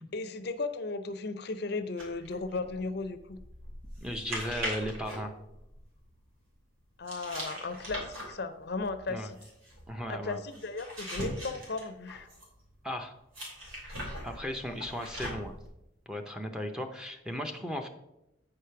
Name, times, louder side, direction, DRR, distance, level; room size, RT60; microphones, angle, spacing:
voice 1, 0.1-3.4 7.0-9.4 10.1-12.3, left 3 dB, 50° left, 11 dB, 0.5 m, -36 dB
sound 1, 2.0-6.1 7.1-12.6 13.3-15.7, equal, 85° right, 3.1 m, -41 dB
voice 2, 4.0-5.3 9.1-9.3 9.9-10.4 12.8-13.1 13.9-15.6 16.1-17.9, equal, 5° right, 3 dB, 0.6 m, -36 dB
8.7 x 4.9 x 5.7 m, 0.87 s
head